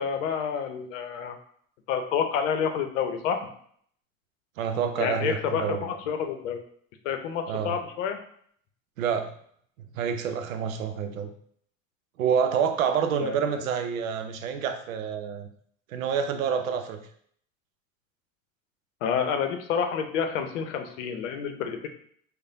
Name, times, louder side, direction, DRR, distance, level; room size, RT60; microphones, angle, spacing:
voice 1, 0.0-1.4 1.9-3.5 5.0-6.6 7.0-8.2 13.2-13.6 19.0-21.9, left 7 dB, 65° left, 6 dB, 0.7 m, -29 dB
voice 2, 4.6-5.9 7.5-7.7 9.0-9.3 9.8-11.3 12.2-15.5 15.9-17.0, right 7 dB, 75° right, 7 dB, 0.6 m, -28 dB
6.4 x 2.2 x 2.6 m, 0.62 s
figure-of-eight pair, 70°, 41 cm